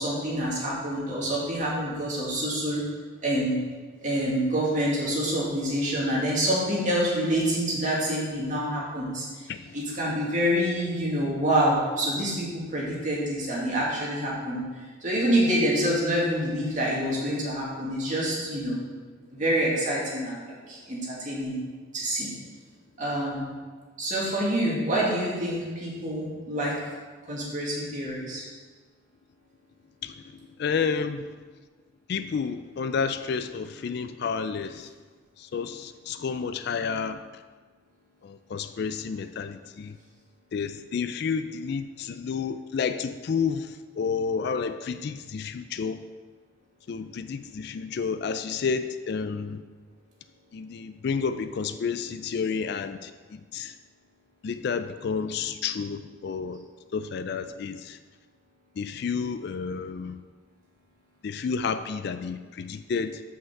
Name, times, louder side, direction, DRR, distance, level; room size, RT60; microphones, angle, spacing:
voice 1, 0.0-2.8 3.2-3.6 4.0-14.6 15.0-18.8 19.3-21.6 21.9-22.3 23.0-23.5 24.0-26.7 27.3-28.4, equal, 40° right, -5 dB, 2.1 m, -27 dB
voice 2, 30.6-31.3 32.1-34.9 35.4-37.4 38.2-40.0 40.5-46.0 46.9-49.6 50.5-53.7 54.4-56.6 56.9-58.0 58.8-60.2 61.2-63.2, left 5 dB, 55° left, 10 dB, 0.3 m, -30 dB
5.6 x 5.6 x 6.5 m, 1.4 s
head